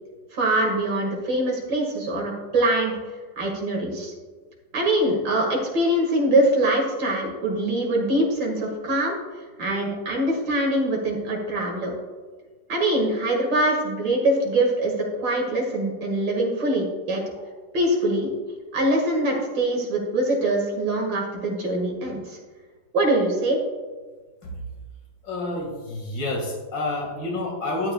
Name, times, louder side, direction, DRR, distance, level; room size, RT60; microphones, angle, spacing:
voice 1, 0.3-3.0 3.4-4.1 4.7-9.2 9.6-11.9 12.7-14.9 15.2-17.2 17.7-18.3 18.7-22.4 22.9-23.6, right 1 dB, 85° right, 0 dB, 2.8 m, -23 dB
voice 2, 25.2-27.9, left 2 dB, 75° left, -2 dB, 2.7 m, -29 dB
12.0 x 9.6 x 2.3 m, 1.4 s
omnidirectional pair, 2.0 m